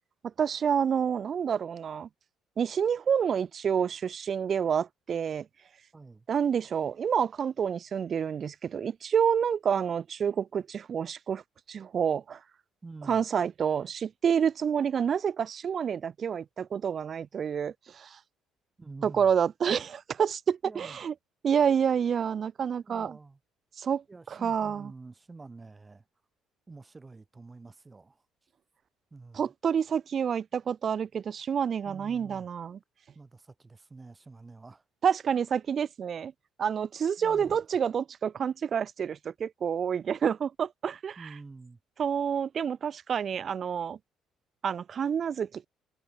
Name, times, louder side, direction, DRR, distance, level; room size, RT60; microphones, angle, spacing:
voice 1, 0.4-2.1 2.6-5.5 6.3-11.4 11.7-12.4 13.1-18.2 19.0-21.1 21.4-23.2 23.8-24.0 24.4-24.9 29.3-32.8 35.0-36.3 36.6-41.2 42.0-44.0 44.6-45.7, right 7 dB, 45° right, 0.4 m, -28 dB
voice 2, 5.9-6.3 12.8-13.2 18.8-19.3 20.6-21.0 22.8-23.4 24.1-26.0 26.7-28.2 29.1-29.5 31.8-32.5 33.1-34.8 37.2-37.6 41.2-41.8, right 3 dB, 20° right, 2.2 m, -48 dB
cardioid pair, 105°, 0 cm